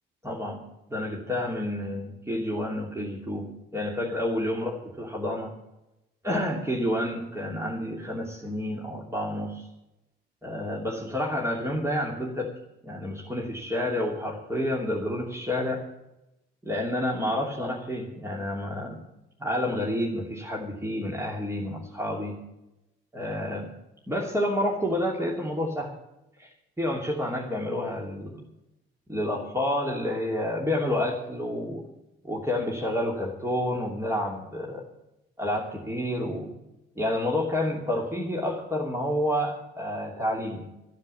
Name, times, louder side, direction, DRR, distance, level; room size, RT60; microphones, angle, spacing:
voice 1, 0.2-0.6 0.9-5.5 6.2-9.6 10.4-12.5 12.8-15.8 16.6-19.0 19.4-22.4 23.1-23.7 24.1-25.9 26.4-26.5 26.8-28.4 29.1-31.8 32.2-34.8 35.4-36.5 37.0-40.7, left 1 dB, 10° right, -2 dB, 2.8 m, -29 dB
13.5 x 9.7 x 7.5 m, 0.91 s
figure-of-eight pair, 45°, 33 cm